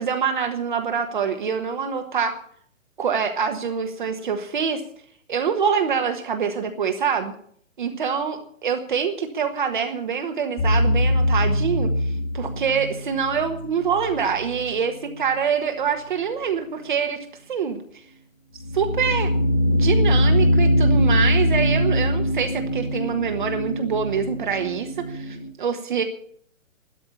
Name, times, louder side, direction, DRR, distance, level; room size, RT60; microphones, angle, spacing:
voice 1, 0.0-2.4 3.0-4.8 5.3-7.3 7.8-18.0 18.7-19.3 19.7-26.0, right 6 dB, 35° right, 5 dB, 1.3 m, -25 dB
sound 1, 10.6-14.7 18.6-25.5, equal, 25° left, 1.6 m, -22 dB
12.5 x 12.5 x 7.1 m, 0.62 s
hypercardioid pair, 170°, 40 cm